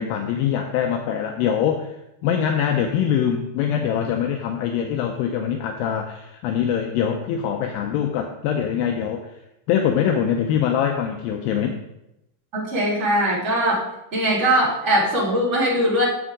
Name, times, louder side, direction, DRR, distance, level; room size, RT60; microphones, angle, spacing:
voice 1, 0.0-1.9 2.2-9.3 9.7-11.8, left 8 dB, 80° left, 4 dB, 2.2 m, -23 dB
voice 2, 12.5-13.8 14.1-16.0, right 1 dB, 20° right, -6 dB, 2.2 m, -20 dB
9.7 x 7.2 x 3.8 m, 0.86 s
omnidirectional pair, 4.7 m